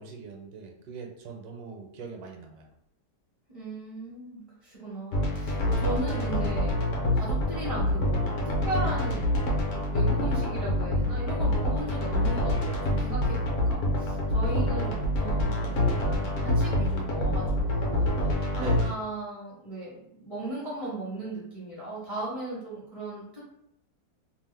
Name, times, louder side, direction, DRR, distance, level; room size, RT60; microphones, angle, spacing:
voice 1, 0.0-2.7 14.4-15.0 18.5-19.0, right 4 dB, 75° right, 2 dB, 1.1 m, -41 dB
voice 2, 3.5-6.7 7.1-9.2 9.7-23.4, right 2 dB, 35° left, -7 dB, 0.5 m, -37 dB
sound 1, 5.1-18.9, left 1 dB, 65° left, 0.9 m, -26 dB
2.7 x 2.0 x 3.3 m, 0.76 s
omnidirectional pair, 1.7 m